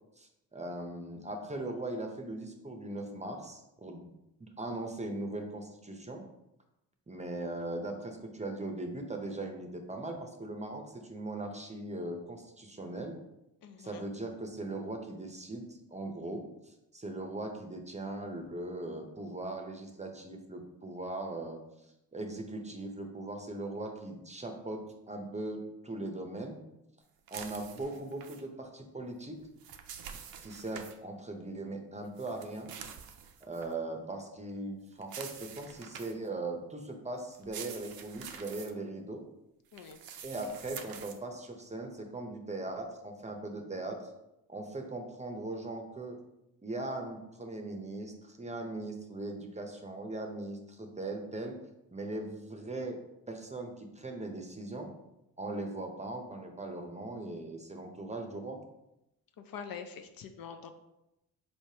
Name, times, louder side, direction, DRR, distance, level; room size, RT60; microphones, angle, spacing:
voice 1, 0.2-4.1 4.4-6.2 7.1-13.2 13.8-21.6 22.1-26.6 27.3-29.4 30.4-32.7 33.4-39.2 40.2-44.1 44.5-46.2 46.6-51.6 51.9-53.0 53.3-54.9 55.4-58.6, right 2 dB, 15° right, 4 dB, 0.7 m, -39 dB
voice 2, 13.6-14.0 39.7-40.0 59.4-60.7, left 6 dB, 55° left, 7 dB, 0.5 m, -45 dB
sound 1, 27.3-28.4 29.4-31.0 32.2-33.7 35.0-36.3 37.3-38.7 39.7-41.2, right 8 dB, 60° right, 0.6 m, -46 dB
4.2 x 3.2 x 2.8 m, 0.89 s
supercardioid pair, 55°, 42 cm